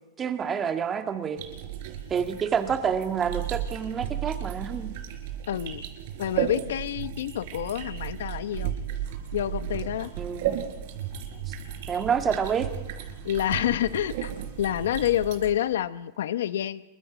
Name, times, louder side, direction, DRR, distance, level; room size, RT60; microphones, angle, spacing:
voice 1, 0.2-1.4 2.1-4.9 10.2-10.6 11.9-12.7, right 7 dB, 20° right, 6 dB, 1.8 m, -28 dB
sound 1, 1.4-15.5, right 10 dB, 60° right, 4.3 m, -34 dB
voice 2, 5.5-5.8 6.2-8.7 9.3-10.1 13.2-14.3 14.6-16.9, left 11 dB, 80° left, 14 dB, 0.9 m, -28 dB
27.5 x 23.0 x 5.1 m, 0.99 s
supercardioid pair, 140°, 0 cm